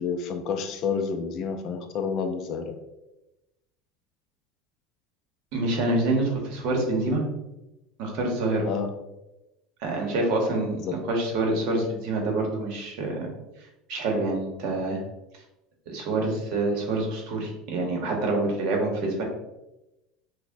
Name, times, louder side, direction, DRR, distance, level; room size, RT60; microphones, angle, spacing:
voice 1, 0.0-2.8 8.6-8.9 10.8-11.0, left 6 dB, 40° left, 6 dB, 0.3 m, -29 dB
voice 2, 5.5-7.2 8.0-8.7 9.8-13.3 13.9-15.0 15.9-19.2, right 2 dB, 55° right, 1 dB, 1.0 m, -26 dB
5.9 x 2.1 x 2.6 m, 0.96 s
cardioid pair, 165°, 0 cm